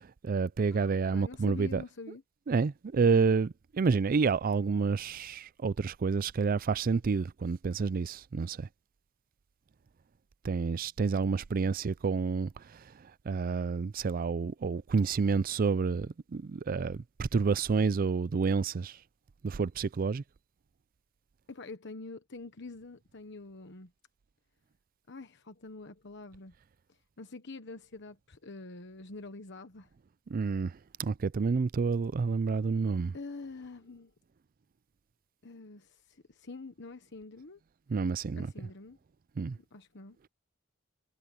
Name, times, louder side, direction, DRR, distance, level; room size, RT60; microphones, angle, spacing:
voice 1, 0.0-1.8 2.5-8.7 10.4-12.5 13.3-18.9 19.4-20.2 30.3-30.7 31.0-33.1 37.9-38.5 39.4-39.6, right 5 dB, 45° right, 0.4 m, -29 dB
voice 2, 0.7-2.2 21.5-23.9 25.1-26.5 27.2-29.9 33.1-34.1 35.4-37.6 38.4-39.0 39.6-40.2, left 3 dB, 60° left, 1.2 m, -46 dB
head